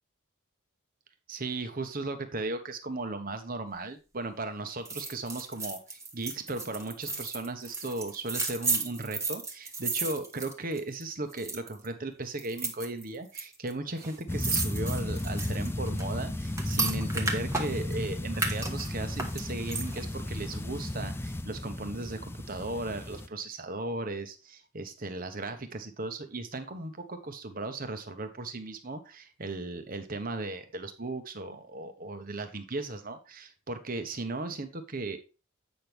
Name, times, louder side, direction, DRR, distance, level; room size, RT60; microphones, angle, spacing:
voice 1, 1.3-35.2, right 2 dB, 45° right, 8 dB, 1.1 m, -36 dB
sound 1, 4.9-11.0 11.3-11.9 12.4-13.4 13.7-13.8 14.0-18.0 18.3-20.1 20.5-20.6, right 3 dB, 15° right, 1.1 m, -34 dB
sound 2, 14.3-23.3, left 1 dB, 10° left, 0.4 m, -34 dB
8.5 x 6.1 x 3.4 m, 0.30 s
head